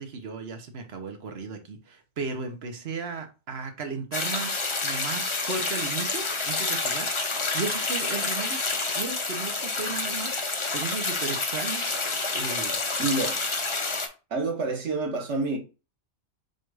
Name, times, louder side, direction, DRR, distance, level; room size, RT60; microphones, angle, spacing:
voice 1, 0.0-8.6 8.9-11.9 12.3-12.8, right 4 dB, 65° right, 1.2 m, -35 dB
sound 1, 4.1-14.1, left 3 dB, 30° left, 0.6 m, -28 dB
voice 2, 13.0-13.4 14.3-15.6, right 3 dB, 80° right, 1.5 m, -28 dB
4.5 x 2.5 x 4.7 m
omnidirectional pair, 1.2 m